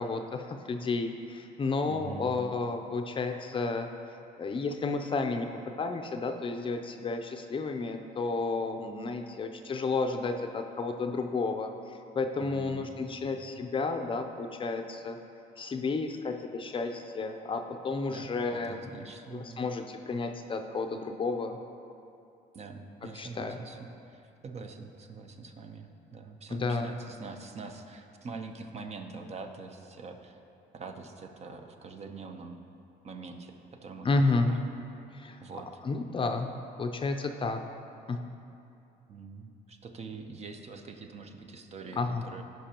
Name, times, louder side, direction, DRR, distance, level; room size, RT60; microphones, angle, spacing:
voice 1, 0.0-3.9 4.4-5.5 5.8-15.2 15.6-18.8 19.3-21.6 23.0-23.6 26.5-26.9 34.0-34.5 35.1-35.4 35.8-37.6 38.1-38.2 42.0-42.2, left 3 dB, 30° left, 5 dB, 0.5 m, -31 dB
voice 2, 1.9-2.4 12.4-12.9 13.2-13.6 18.1-19.8 22.5-23.8 24.1-30.4 30.7-32.6 33.0-34.7 35.4-35.7 39.1-42.4, right 4 dB, 40° right, 5 dB, 0.7 m, -44 dB
15.5 x 5.5 x 2.9 m, 2.7 s
cardioid pair, 110°, 17 cm